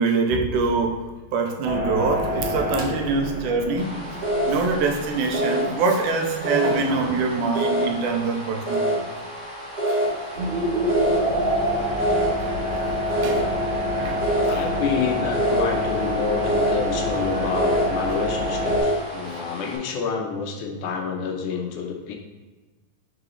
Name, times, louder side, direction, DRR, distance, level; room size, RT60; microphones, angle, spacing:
voice 1, 0.0-4.0 4.5-9.1 9.9-10.0 13.2-13.5 14.0-14.6 19.3-19.4, right 4 dB, 85° right, 3 dB, 2.1 m, -24 dB
sound 1, 1.6-7.6 8.0-8.1 9.5-9.9 10.3-18.8, equal, 55° right, 2.2 m, -27 dB
sound 2, 3.8-19.8, right 1 dB, 35° right, 1.9 m, -28 dB
voice 2, 14.5-22.2, left 5 dB, 75° left, 1 dB, 2.0 m, -28 dB
4.8 x 3.8 x 5.0 m, 1.3 s
omnidirectional pair, 3.7 m